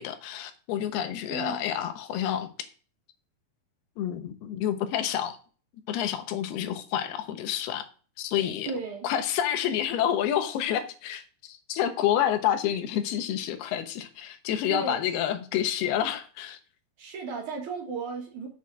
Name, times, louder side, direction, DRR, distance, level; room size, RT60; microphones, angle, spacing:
voice 1, 0.0-2.5 4.0-5.4 5.9-7.9 8.2-8.7 9.0-16.6, left 10 dB, 90° left, 3.0 m, -28 dB
voice 2, 1.3-1.7 8.7-9.1 14.7-15.0 17.0-18.5, right 5 dB, 60° right, 2.9 m, -34 dB
7.1 x 6.3 x 6.2 m
omnidirectional pair, 4.4 m